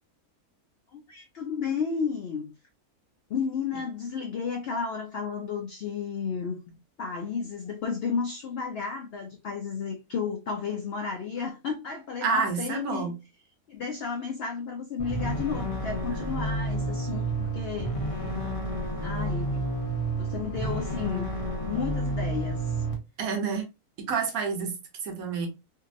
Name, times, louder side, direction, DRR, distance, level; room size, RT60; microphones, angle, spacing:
voice 1, 0.9-2.5 3.3-13.2 13.7-17.9 19.0-19.6 20.2-21.3 21.6-22.8, left 6 dB, 85° left, 0.5 m, -33 dB
voice 2, 12.2-13.1 23.2-23.6 24.1-24.8 25.0-25.5, right 5 dB, 70° right, 1.2 m, -28 dB
sound 1, 15.0-22.9, right 1 dB, 35° left, 0.6 m, -30 dB
2.7 x 2.6 x 2.4 m
omnidirectional pair, 1.6 m